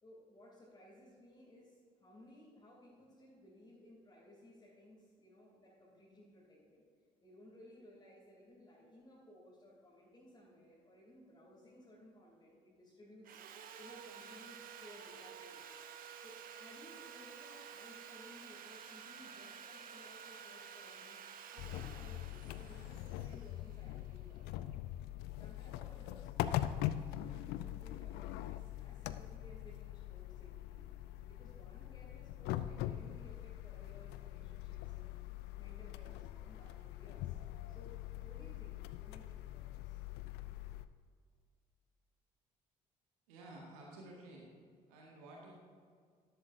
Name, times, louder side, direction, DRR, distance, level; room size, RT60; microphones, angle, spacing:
voice 1, 0.0-6.8 7.2-13.4 13.8-15.7 16.2-21.2 21.5-24.6 25.4-30.9 31.3-35.2 35.5-37.4 37.7-40.0, left 1 dB, 20° left, -7 dB, 2.8 m, -59 dB
Sawing, 13.2-24.3, right 7 dB, 45° right, 0.9 m, -52 dB
sound 1, 21.6-40.9, left 13 dB, 55° left, 0.5 m, -43 dB
voice 2, 43.3-44.5 44.9-45.5, right 2 dB, 70° right, -2 dB, 1.8 m, -53 dB
13.5 x 12.0 x 2.6 m, 2.1 s
figure-of-eight pair, 50°, 20 cm